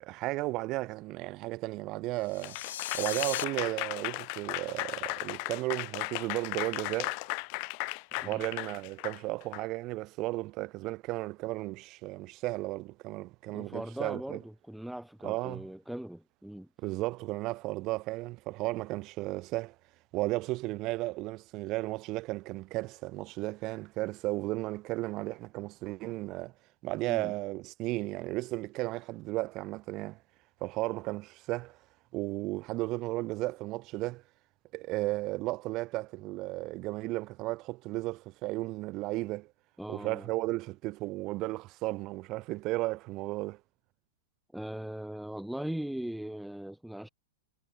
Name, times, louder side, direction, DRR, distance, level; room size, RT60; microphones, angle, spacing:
voice 1, 0.0-2.6 2.9-7.2 8.1-14.4 15.2-15.6 16.8-19.8 20.1-26.5 26.8-30.2 30.6-31.8 32.1-34.2 34.7-39.5 39.9-43.6, right 20 dB, 30° right, 2.1 m, -34 dB
sound 1, 2.3-3.5, left 11 dB, 75° left, 7.8 m, -37 dB
Applause / Crowd, 2.4-9.6, left 40 dB or more, 40° left, 1.4 m, -36 dB
voice 2, 13.5-16.7 27.1-27.3 39.8-40.3 44.5-47.1, right 1 dB, ahead, 4.6 m, -39 dB
supercardioid pair, 165°, 0 cm